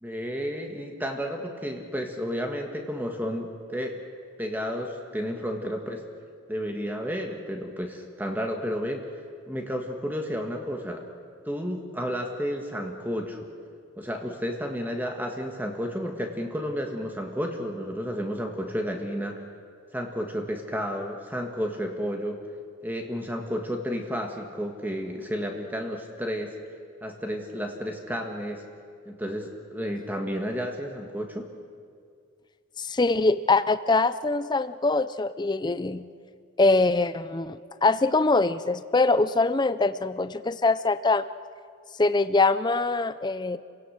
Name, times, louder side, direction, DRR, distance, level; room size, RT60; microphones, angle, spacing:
voice 1, 0.0-4.0 4.4-6.0 6.5-9.0 9.5-11.0 11.4-13.4 14.0-19.4 19.9-22.4 22.8-26.5 27.0-28.6 29.1-31.5, equal, 10° right, 2 dB, 1.5 m, -32 dB
voice 2, 32.8-36.1 36.6-41.2 42.0-43.6, left 3 dB, 20° left, 13 dB, 0.4 m, -23 dB
29.5 x 17.0 x 6.5 m, 2.2 s
head